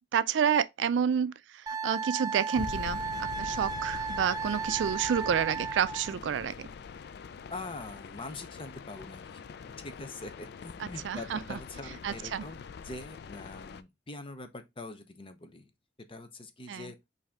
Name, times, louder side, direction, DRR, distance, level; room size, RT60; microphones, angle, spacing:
voice 1, 0.1-6.7 10.8-11.6 11.9-12.5 16.7-16.9, right 8 dB, 85° right, 0.3 m, -30 dB
Wind instrument woodwind instrument, 1.7-6.1, right 4 dB, 20° right, 0.5 m, -35 dB
sound 1, 2.5-13.8, left 6 dB, 60° left, 0.3 m, -44 dB
voice 2, 7.5-9.4 9.8-12.6 12.8-15.7 16.0-17.0, left 2 dB, 30° left, 0.7 m, -43 dB
5.3 x 2.7 x 3.5 m
head